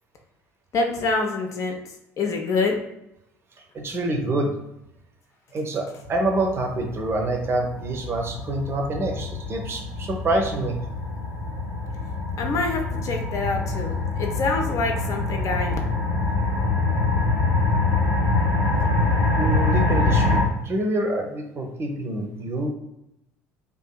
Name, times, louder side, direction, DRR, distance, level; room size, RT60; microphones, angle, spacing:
voice 1, 0.7-1.8 2.2-2.8 12.4-15.8, left 3 dB, 45° left, 3 dB, 0.5 m, -26 dB
voice 2, 3.6-4.5 5.5-10.8 19.4-22.7, right 2 dB, 35° right, 2 dB, 0.6 m, -26 dB
sound 1, 6.0-20.4, left 2 dB, 60° left, 0.8 m, -25 dB
2.6 x 2.5 x 2.2 m, 0.83 s
figure-of-eight pair, 60°, 8 cm